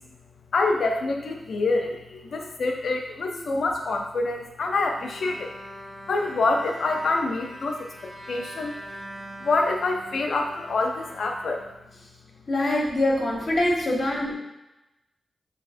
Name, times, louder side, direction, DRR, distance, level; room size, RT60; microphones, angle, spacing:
voice 1, 0.5-5.5 6.1-8.8 9.4-11.6, left 3 dB, 75° left, 3 dB, 0.6 m, -26 dB
Bowed string instrument, 5.0-12.4, equal, 20° right, 1.6 m, -42 dB
voice 2, 12.5-14.3, left 1 dB, 55° left, -3 dB, 1.4 m, -25 dB
7.0 x 2.8 x 2.6 m, 0.94 s
cardioid pair, 55°, 0 cm